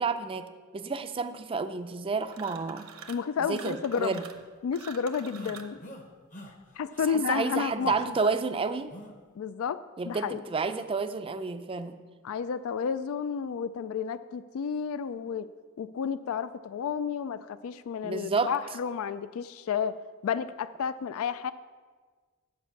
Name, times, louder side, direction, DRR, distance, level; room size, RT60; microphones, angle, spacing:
voice 1, 0.0-2.9 3.4-4.2 7.1-8.9 10.0-12.0 18.0-18.5, right 4 dB, 25° right, 10 dB, 0.4 m, -30 dB
sound 1, 2.3-3.3 3.5-5.8, right 6 dB, 65° right, 0.8 m, -46 dB
voice 2, 3.1-4.2 4.6-5.8 6.8-7.9 9.4-9.8 10.1-10.4 12.2-15.5 15.8-21.5, left 6 dB, 70° left, 14 dB, 0.3 m, -31 dB
sound 2, 5.3-6.0 6.3-6.5 6.9-7.1 7.8-8.0 8.9-9.1, equal, 35° left, 0.9 m, -45 dB
9.6 x 5.3 x 7.0 m, 1.5 s
head